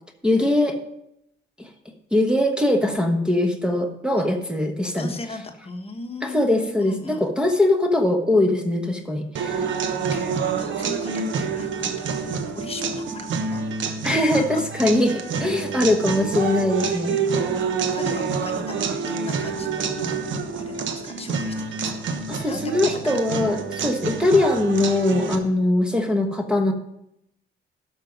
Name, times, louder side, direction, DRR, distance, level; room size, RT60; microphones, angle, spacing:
voice 1, 0.2-0.8 1.6-1.7 2.1-5.1 6.2-9.7 14.0-17.2 22.3-26.7, left 1 dB, 5° right, 4 dB, 1.2 m, -21 dB
voice 2, 5.0-7.3 9.8-14.6 17.2-20.2 20.5-22.1 22.3-23.0 23.3-23.5 25.2-25.4, left 3 dB, 30° left, 4 dB, 1.3 m, -38 dB
sound 1, 9.4-25.4, right 5 dB, 75° right, 1.1 m, -27 dB
12.5 x 6.0 x 5.2 m, 0.81 s
cardioid pair, 90°, 20 cm